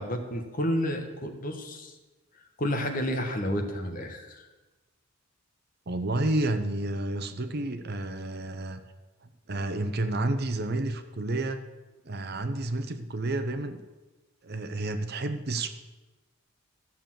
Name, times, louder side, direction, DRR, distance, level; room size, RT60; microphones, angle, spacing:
voice 1, 0.0-1.9 2.6-4.5, equal, 40° left, 5 dB, 1.5 m, -30 dB
voice 2, 5.9-8.8 9.5-11.6 12.0-13.8 14.4-15.7, right 2 dB, 45° right, 9 dB, 0.8 m, -30 dB
13.5 x 7.0 x 7.6 m, 1.2 s
head